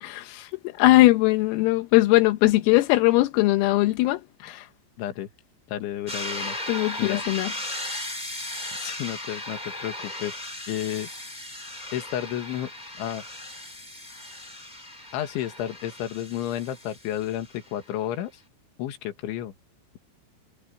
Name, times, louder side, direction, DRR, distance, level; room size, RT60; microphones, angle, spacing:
voice 1, 0.0-0.5 0.8-4.6 6.7-7.5, left 18 dB, 85° left, 3.8 m, -20 dB
voice 2, 5.0-5.3 5.7-6.6 7.0-7.2 8.8-10.4 10.7-11.1 11.9-12.7 13.0-13.3 15.1-18.4 18.8-19.5, left 11 dB, 70° left, 4.2 m, -31 dB
sound 1, 6.1-17.7, left 1 dB, 10° left, 3.9 m, -37 dB
omnidirectional pair, 5.9 m